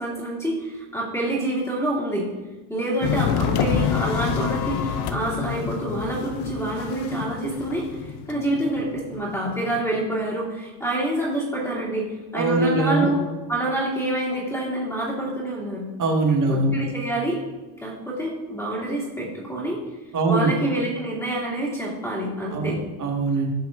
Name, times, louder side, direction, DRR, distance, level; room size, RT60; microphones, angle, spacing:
voice 1, 0.0-2.3 2.7-13.2 13.5-15.9 16.5-17.4 17.8-19.8 20.3-22.8, right 1 dB, 5° left, -7 dB, 2.4 m, -27 dB
sound 1, 3.0-9.9, left 8 dB, 55° left, 0.7 m, -28 dB
voice 2, 12.3-13.1 16.0-16.7 20.1-20.5 22.5-22.7 23.0-23.5, right 2 dB, 40° right, 1 dB, 1.8 m, -21 dB
10.0 x 5.8 x 2.5 m, 1.2 s
supercardioid pair, 100°, 49 cm